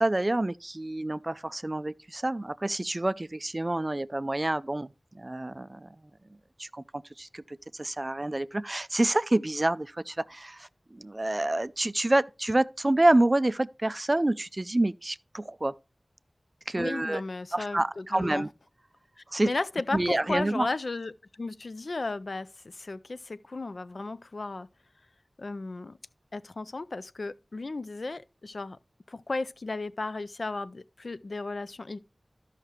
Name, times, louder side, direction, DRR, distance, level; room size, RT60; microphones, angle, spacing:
voice 1, 0.0-5.9 6.6-6.8 7.2-15.7 16.7-17.2 17.5-18.5 19.3-19.5 19.9-20.7, right 1 dB, 35° right, 0.3 m, -28 dB
voice 2, 16.7-18.5 19.4-24.7 25.4-26.0 26.3-28.8 29.1-32.0, left 3 dB, 75° left, 0.4 m, -35 dB
13.5 x 5.7 x 2.9 m
wide cardioid pair, 65°, 0 cm